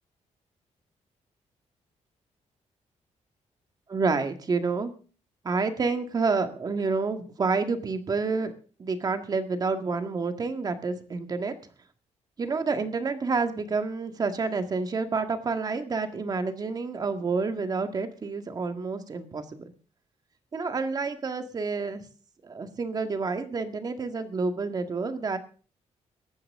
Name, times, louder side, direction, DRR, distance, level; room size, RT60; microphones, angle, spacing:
voice 1, 3.9-4.9 5.4-8.5 8.8-11.5 12.4-19.7 20.5-22.0 22.4-25.4, right 4 dB, 30° right, 7 dB, 1.8 m, -29 dB
19.0 x 14.0 x 3.7 m, 0.39 s
wide cardioid pair, 165°, 12 cm